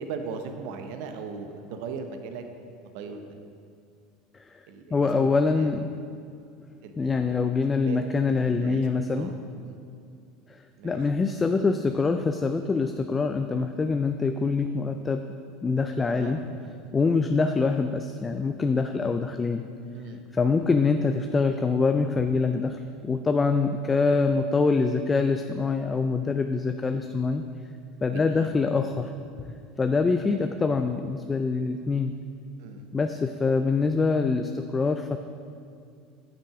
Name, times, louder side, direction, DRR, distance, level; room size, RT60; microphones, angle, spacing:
voice 1, 0.0-2.4 2.9-3.4 4.7-5.7 6.8-8.0 8.2-8.8 9.1-9.3 9.6-9.8 10.8-11.0 16.2-16.4 19.9-20.2 28.1-28.5 30.3-30.5 32.6-32.8, right 5 dB, 70° right, 6 dB, 0.8 m, -38 dB
voice 2, 4.9-5.9 7.0-9.3 10.5-15.2 15.6-16.4 16.9-19.6 20.3-27.4 28.0-29.1 29.5-32.1 32.9-35.2, left 4 dB, 20° left, 7 dB, 0.3 m, -25 dB
8.5 x 6.0 x 4.8 m, 2.4 s
supercardioid pair, 105°, 0 cm